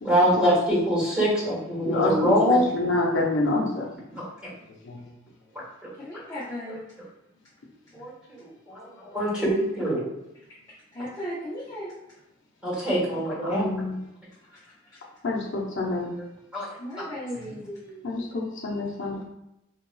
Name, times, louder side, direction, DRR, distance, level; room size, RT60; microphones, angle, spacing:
voice 1, 0.0-2.6 4.2-4.5 5.8-5.9 7.9-8.1 8.4-10.1 12.6-13.7 16.5-16.7, equal, 5° right, -8 dB, 1.4 m, -24 dB
voice 2, 1.8-3.9 4.7-5.1 13.4-14.0 15.2-16.1 18.0-19.2, left 2 dB, 65° left, -3 dB, 0.6 m, -27 dB
voice 3, 6.0-6.8 10.9-11.9 14.9-15.0 16.8-18.3, equal, 20° left, -10 dB, 0.7 m, -36 dB
3.7 x 2.7 x 2.2 m, 0.88 s
head